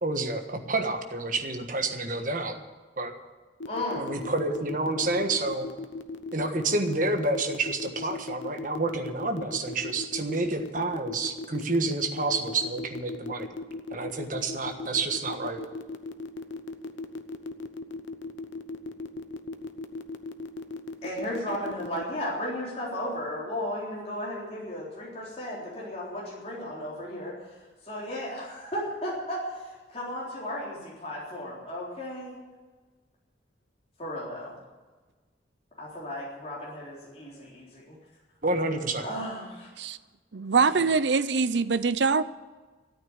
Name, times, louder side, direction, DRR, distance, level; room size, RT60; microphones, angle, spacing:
voice 1, 0.0-2.6 3.0-3.1 4.0-5.7 6.3-13.5 13.9-15.6 38.4-39.0, right 2 dB, 45° right, 5 dB, 1.5 m, -29 dB
sound 1, 3.6-22.0, left 3 dB, 90° left, 0.9 m, -37 dB
voice 2, 3.7-4.1 21.0-32.4 34.0-34.6 35.8-38.0 39.0-39.7 40.7-40.9, left 1 dB, 35° left, -6 dB, 3.8 m, -35 dB
voice 3, 40.3-42.2, right 4 dB, 70° right, 14 dB, 0.6 m, -23 dB
13.5 x 8.8 x 9.7 m, 1.3 s
head